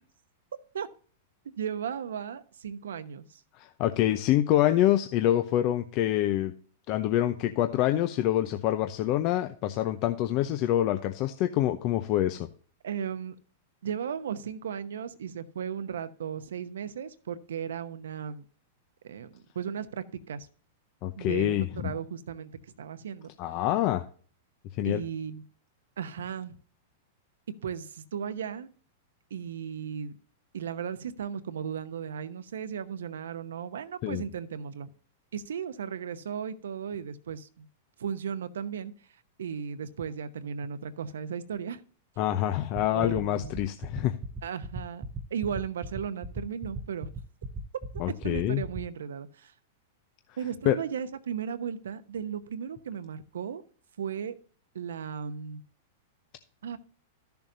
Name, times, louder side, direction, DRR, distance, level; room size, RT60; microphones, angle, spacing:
voice 1, 1.6-3.4 12.8-13.3 13.8-18.4 19.0-20.5 21.2-22.5 22.8-23.3 24.8-25.4 26.0-26.6 27.6-28.7 29.3-30.1 30.5-34.9 35.3-37.7 38.0-38.9 39.4-41.8 42.9-43.5 44.4-45.0 45.3-47.1 48.2-49.5 50.4-53.6 54.0-54.4 54.7-55.6 56.6-56.8, right 7 dB, 80° right, 12 dB, 0.9 m, -36 dB
voice 2, 3.6-6.5 6.9-12.5 21.0-21.9 23.4-24.0 24.8-25.0 34.0-34.2 42.2-44.2 48.0-48.6 50.6-50.8, left 13 dB, 45° left, 8 dB, 0.7 m, -26 dB
sound 1, 42.7-48.8, right 2 dB, 20° right, 0.9 m, -36 dB
13.5 x 7.0 x 2.7 m, 0.42 s
hypercardioid pair, 110°, 0 cm